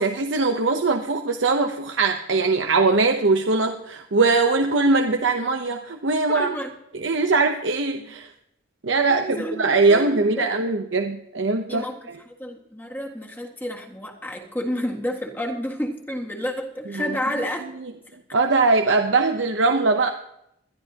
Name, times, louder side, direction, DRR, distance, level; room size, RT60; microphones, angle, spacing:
voice 1, 0.0-6.5 7.0-8.3 8.8-9.3 9.6-12.1 16.9-17.1 18.3-20.1, right 3 dB, 70° right, 5 dB, 0.8 m, -21 dB
voice 2, 6.3-6.7 9.1-10.5 11.7-12.0 12.3-17.7 18.0-18.2, equal, 10° left, 1 dB, 1.8 m, -30 dB
21.0 x 12.5 x 2.9 m, 0.78 s
head